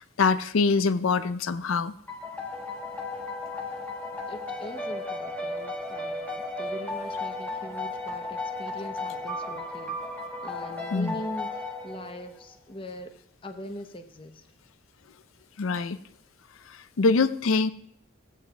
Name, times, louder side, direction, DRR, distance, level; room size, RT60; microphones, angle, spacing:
voice 1, 0.0-1.9 10.9-11.2 15.6-16.0 16.7-17.7, left 4 dB, 85° left, 13 dB, 0.5 m, -24 dB
sound 1, 2.1-12.5, left 2 dB, 10° left, 1.1 m, -35 dB
voice 2, 4.3-10.0 10.4-14.5, equal, 25° left, 7 dB, 0.8 m, -41 dB
16.0 x 8.5 x 2.3 m, 0.67 s
head